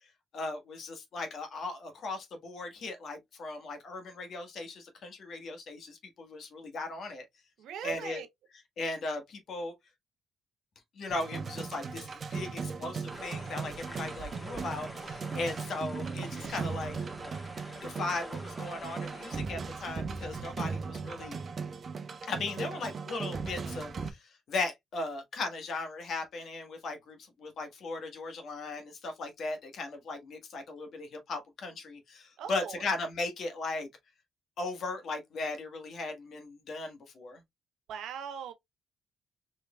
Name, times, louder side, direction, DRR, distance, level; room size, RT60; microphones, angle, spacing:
voice 1, 0.3-7.2 7.8-8.2 8.8-9.7 10.9-16.9 17.8-21.4 22.3-33.9 34.6-37.4, left 3 dB, 60° left, 1.4 m, -37 dB
voice 2, 7.6-8.3 32.4-32.8 37.9-38.5, right 8 dB, 80° right, 0.6 m, -39 dB
sound 1, 11.1-24.1, right 5 dB, 45° right, 0.7 m, -38 dB
sound 2, 13.1-19.4, equal, 10° left, 1.6 m, -47 dB
4.3 x 3.3 x 2.2 m
cardioid pair, 90°, 0 cm